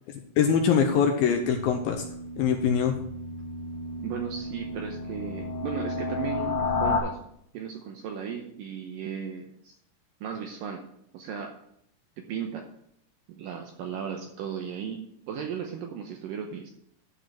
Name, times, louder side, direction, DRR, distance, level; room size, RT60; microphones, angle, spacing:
voice 1, 0.4-2.0 2.4-2.9, left 7 dB, 80° left, 5 dB, 2.2 m, -23 dB
sound 1, 1.4-7.0, left 3 dB, 65° left, 3.2 m, -32 dB
voice 2, 4.0-7.2 7.5-9.8 10.2-10.8 11.1-11.6 12.2-12.7 13.3-15.0 15.3-16.7, right 7 dB, 80° right, 3 dB, 2.0 m, -35 dB
11.5 x 5.1 x 5.9 m, 0.72 s
omnidirectional pair, 4.8 m